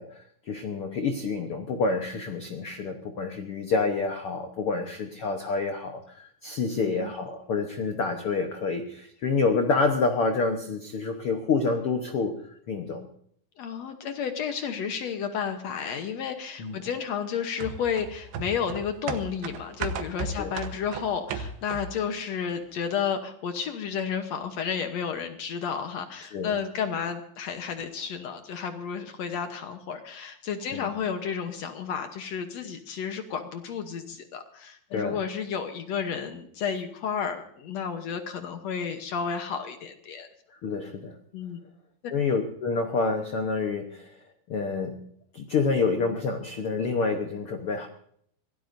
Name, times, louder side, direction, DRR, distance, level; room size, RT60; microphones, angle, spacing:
voice 1, 0.0-12.4 12.7-13.1 16.6-16.7 20.4-20.5 26.3-26.5 30.7-30.9 34.9-35.2 40.5-41.1 42.1-44.2 44.5-45.0 45.3-47.9, left 4 dB, 85° left, 5 dB, 1.2 m, -28 dB
voice 2, 6.7-7.1 13.6-40.3 41.3-41.6, left 7 dB, 70° left, 7 dB, 1.6 m, -32 dB
sound 1, 17.6-22.1 22.4-22.5, right 5 dB, 85° right, 3.1 m, -35 dB
25.0 x 17.5 x 2.7 m, 0.65 s
omnidirectional pair, 4.4 m